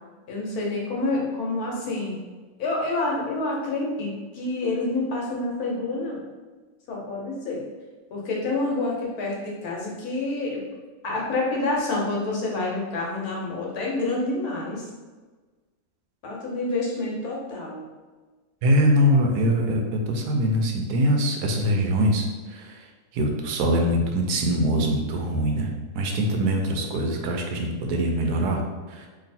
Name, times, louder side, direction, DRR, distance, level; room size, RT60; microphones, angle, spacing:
voice 1, 0.3-2.2 2.6-6.2 6.9-7.6 8.1-10.6 11.0-14.9 16.2-17.9, left 2 dB, 75° left, -3 dB, 1.4 m, -28 dB
voice 2, 18.6-22.8 23.1-25.7 25.9-28.6 28.9-29.1, equal, 85° right, 2 dB, 1.1 m, -23 dB
3.0 x 2.6 x 4.1 m, 1.3 s
omnidirectional pair, 1.6 m